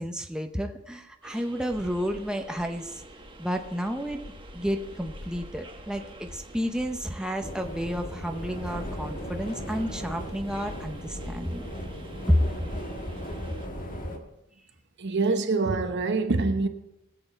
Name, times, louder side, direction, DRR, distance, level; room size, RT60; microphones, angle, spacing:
voice 1, 0.0-3.0 3.4-4.2 4.5-11.6 12.3-12.4, equal, 5° right, 0.7 m, -30 dB
sound 1, 1.2-13.7, right 2 dB, 25° right, 1.1 m, -49 dB
sound 2, 1.7-11.4, left 1 dB, 65° left, 1.2 m, -47 dB
sound 3, 7.4-14.2, equal, 40° left, 1.7 m, -37 dB
voice 2, 15.0-16.7, right 3 dB, 55° right, 1.0 m, -25 dB
20.0 x 7.8 x 4.5 m
head